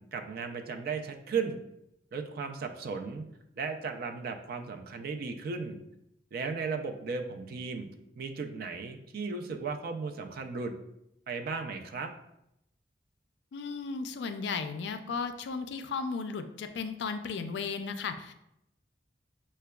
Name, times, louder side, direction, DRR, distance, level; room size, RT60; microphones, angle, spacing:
voice 1, 0.0-1.6 2.1-3.2 3.6-5.8 6.3-7.9 8.2-10.7 11.3-12.1, right 5 dB, 55° right, 5 dB, 0.3 m, -35 dB
voice 2, 13.5-18.3, left 5 dB, 70° left, 8 dB, 0.3 m, -35 dB
5.7 x 2.2 x 2.2 m, 0.83 s
head